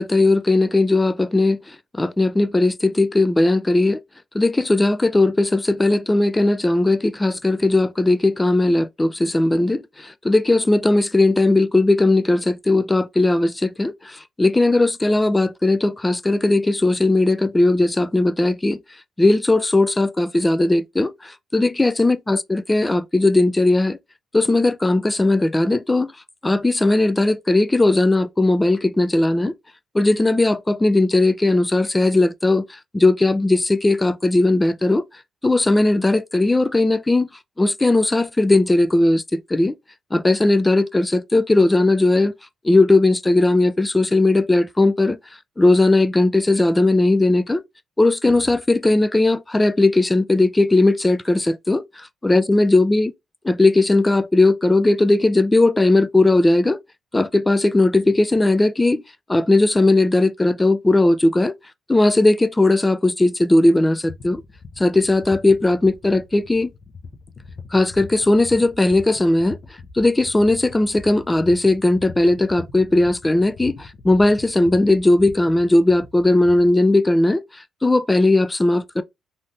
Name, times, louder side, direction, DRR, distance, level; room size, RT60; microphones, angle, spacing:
voice 1, 0.0-4.0 4.3-18.8 19.2-24.0 24.3-26.1 26.4-29.5 29.9-35.0 35.4-37.3 37.6-39.7 40.1-42.3 42.6-45.2 45.6-47.6 48.0-53.1 53.4-56.8 57.1-59.0 59.3-61.5 61.9-64.4 64.8-66.7 67.7-69.6 69.9-77.4 77.8-79.0, left 2 dB, 15° left, 0.3 m, -18 dB
sound 1, 64.1-76.7, left 4 dB, 50° left, 0.8 m, -41 dB
3.2 x 2.8 x 2.5 m
cardioid pair, 90°, 0 cm